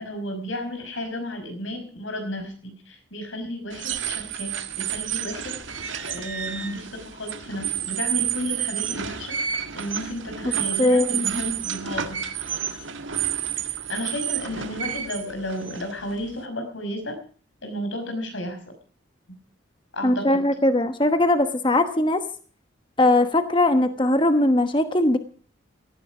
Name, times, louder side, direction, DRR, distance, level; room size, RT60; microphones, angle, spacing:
voice 1, 0.0-4.5 4.8-12.2 13.9-17.2 17.6-18.6 19.3-19.4 19.9-20.5, left 1 dB, 90° left, 6 dB, 5.6 m, -33 dB
sound 1, 3.7-16.4, right 9 dB, 85° right, 1.7 m, -30 dB
voice 2, 10.8-11.4 20.0-22.2 23.0-25.2, left 1 dB, 25° left, 9 dB, 1.1 m, -20 dB
17.5 x 14.5 x 5.0 m, 0.43 s
head